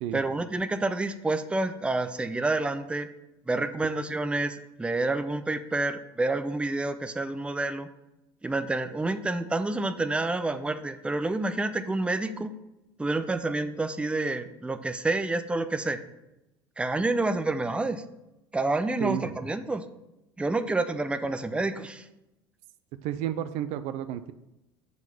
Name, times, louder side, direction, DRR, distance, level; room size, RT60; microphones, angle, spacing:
voice 1, 0.1-3.1 3.5-7.9 8.4-12.5 13.0-16.0 16.8-18.0 18.5-19.8 20.4-22.1, right 2 dB, 10° right, 10 dB, 0.5 m, -28 dB
voice 2, 19.0-19.4 23.0-24.3, right 11 dB, 55° right, 12 dB, 0.4 m, -31 dB
7.2 x 3.9 x 6.0 m, 0.93 s
hypercardioid pair, 70°, 13 cm